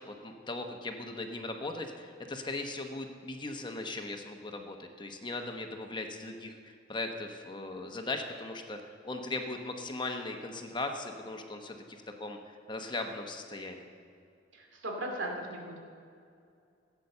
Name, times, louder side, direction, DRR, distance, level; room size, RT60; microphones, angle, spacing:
voice 1, 0.0-8.8 9.0-13.9, left 2 dB, 25° left, 4 dB, 1.0 m, -38 dB
voice 2, 14.5-15.8, right 1 dB, 90° right, 1 dB, 2.6 m, -37 dB
16.0 x 8.4 x 6.7 m, 2.4 s
head